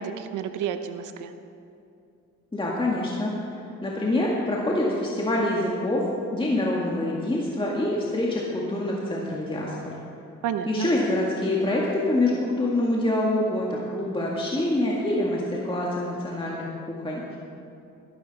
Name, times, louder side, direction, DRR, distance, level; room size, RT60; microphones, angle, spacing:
voice 1, 0.0-1.3 10.4-10.9, right 8 dB, 85° right, 8 dB, 0.9 m, -30 dB
voice 2, 2.5-3.3 3.8-6.0 6.3-9.9 10.7-17.4, left 1 dB, 15° left, -4 dB, 1.9 m, -26 dB
13.5 x 12.5 x 4.2 m, 2.7 s
cardioid pair, 90°, 30 cm